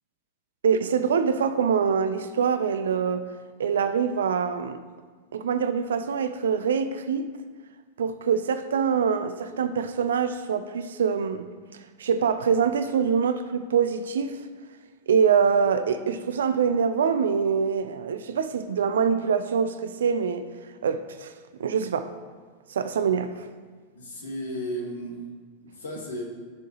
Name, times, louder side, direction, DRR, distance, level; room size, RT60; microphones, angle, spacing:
voice 1, 0.6-3.3 3.6-4.8 5.3-7.3 8.0-11.5 12.0-14.4 15.1-20.5 20.8-21.3 21.6-22.1 22.7-23.4, right 6 dB, 65° right, 10 dB, 0.4 m, -24 dB
voice 2, 23.9-25.2 25.6-26.2, equal, 70° left, 0 dB, 1.4 m, -34 dB
13.5 x 4.6 x 3.0 m, 1.5 s
figure-of-eight pair, 90°, 0 cm